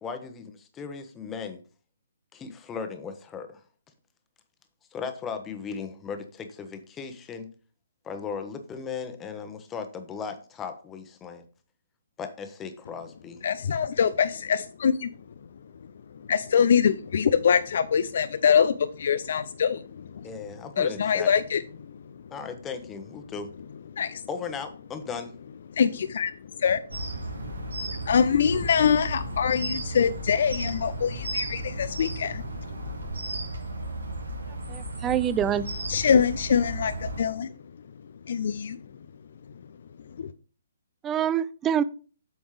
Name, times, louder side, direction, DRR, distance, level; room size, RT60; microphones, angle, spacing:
voice 1, 0.0-1.6 2.3-3.6 4.9-7.5 8.0-11.4 12.2-13.4 20.2-21.3 22.3-23.5 24.3-25.3, left 5 dB, 15° left, 8 dB, 1.1 m, -37 dB
voice 2, 13.4-15.1 16.3-20.3 20.8-21.9 24.0-24.2 25.8-26.3 26.6-26.8 27.4-27.5 27.9-32.4 35.9-37.5 38.3-38.8 40.2-40.3, left 7 dB, 55° left, 13 dB, 0.5 m, -24 dB
sound 1, 26.9-37.2, right 1 dB, 75° right, 2.1 m, -34 dB
voice 3, 34.7-35.7 41.0-41.8, right 9 dB, 15° right, 17 dB, 0.4 m, -25 dB
8.6 x 6.9 x 3.3 m, 0.38 s
figure-of-eight pair, 130°, 0 cm